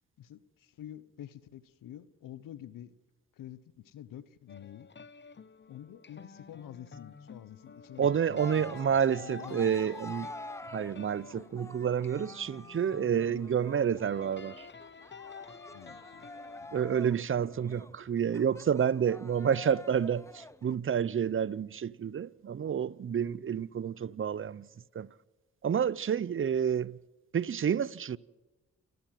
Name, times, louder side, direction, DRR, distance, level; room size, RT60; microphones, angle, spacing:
voice 1, 0.2-2.9 3.3-4.9 5.7-9.8 15.7-16.3 16.6-16.7 17.9-18.0, left 11 dB, 80° left, 0.9 m, -48 dB
sound 1, 4.5-17.7, left 5 dB, 35° left, 1.0 m, -51 dB
voice 2, 8.0-10.3 10.7-14.7 16.7-24.7 24.9-25.1 25.6-27.0 27.3-28.2, right 8 dB, 40° right, 0.6 m, -29 dB
Cheering, 8.4-20.8, left 2 dB, 10° left, 0.6 m, -48 dB
27.5 x 13.5 x 7.6 m
supercardioid pair, 55°, 32 cm